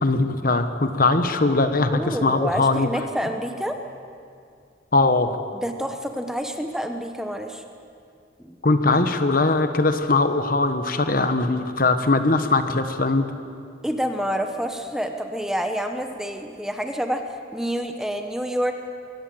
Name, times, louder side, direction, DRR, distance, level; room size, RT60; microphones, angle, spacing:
voice 1, 0.0-2.9 4.9-5.3 8.6-13.3, left 3 dB, 45° left, 8 dB, 1.2 m, -20 dB
voice 2, 1.9-3.8 5.5-7.6 8.4-8.6 8.9-9.0 13.8-17.2 17.5-18.7, equal, 5° right, 5 dB, 1.0 m, -28 dB
23.5 x 16.5 x 7.8 m, 2.4 s
head